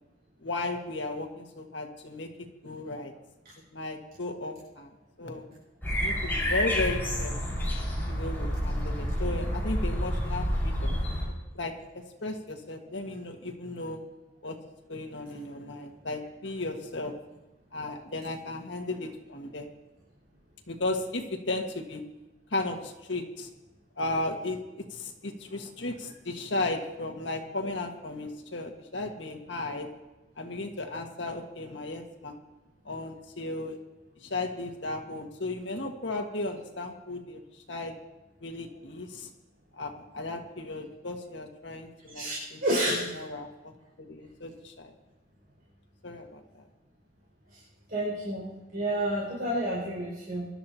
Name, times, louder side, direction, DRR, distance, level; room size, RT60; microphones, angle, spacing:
voice 1, 0.4-3.1 3.7-5.5 6.0-7.3 8.1-11.0 11.5-14.0 14.4-14.6 14.9-17.1 17.7-19.7 20.7-22.0 22.5-23.5 24.0-29.9 30.4-32.4 32.9-33.8 34.2-37.4 37.7-37.9 38.4-39.3 39.7-42.6 42.9-43.7 44.0-44.9 46.0-46.6, left 2 dB, 70° left, 3 dB, 1.8 m, -35 dB
sound 1, 5.8-11.2, equal, 10° left, 5.4 m, -29 dB
voice 2, 42.6-43.1 47.5-47.6 47.9-50.5, right 1 dB, 55° right, -7 dB, 5.5 m, -30 dB
23.5 x 12.5 x 3.0 m, 1.1 s
head